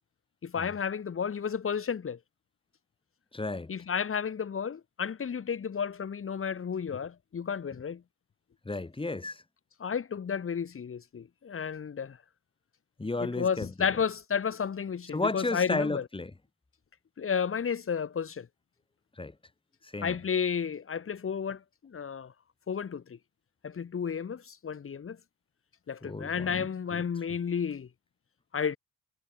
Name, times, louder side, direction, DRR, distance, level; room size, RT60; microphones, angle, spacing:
voice 1, 0.4-2.2 3.7-8.0 9.8-12.2 13.2-16.0 17.2-18.5 20.0-22.3 22.7-23.2 23.6-25.2 25.9-27.9 28.5-28.8, left 7 dB, 45° left, 4.6 m, -32 dB
voice 2, 3.3-3.7 8.6-9.4 13.0-13.7 15.1-16.3 19.2-19.3 19.8-20.2 26.0-27.0, left 2 dB, 15° left, 6.0 m, -33 dB
cardioid pair, 90°, 30 cm